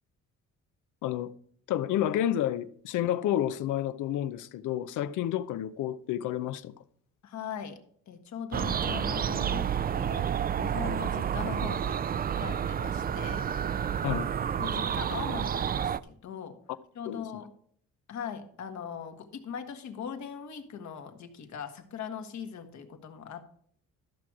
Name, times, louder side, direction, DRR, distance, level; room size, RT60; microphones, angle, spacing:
voice 1, 1.0-1.3 1.7-6.7 14.0-14.3 17.1-17.2, left 11 dB, 85° left, 0.6 m, -30 dB
voice 2, 7.2-12.0 12.4-13.5 13.9-14.0 14.6-16.6 16.9-17.5 18.1-23.4, left 7 dB, 70° left, 1.6 m, -40 dB
sound 1, 8.5-16.0, right 8 dB, 30° right, 0.4 m, -30 dB
13.5 x 6.1 x 4.8 m
cardioid pair, 90°, 30 cm